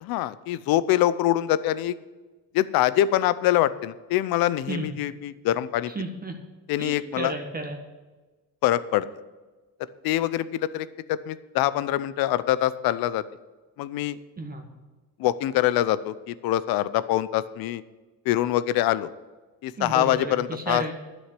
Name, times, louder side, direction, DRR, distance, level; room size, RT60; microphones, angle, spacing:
voice 1, 0.0-1.9 2.5-5.9 6.7-7.3 8.6-9.1 10.0-13.2 13.8-14.2 15.2-17.8 18.3-19.1 19.6-20.8, left 13 dB, 70° left, 16 dB, 0.7 m, -24 dB
voice 2, 5.9-6.3 6.8-7.8 14.4-14.6 19.7-20.9, right 2 dB, 25° right, 3 dB, 1.5 m, -32 dB
11.0 x 6.4 x 8.3 m, 1.2 s
cardioid pair, 125°, 38 cm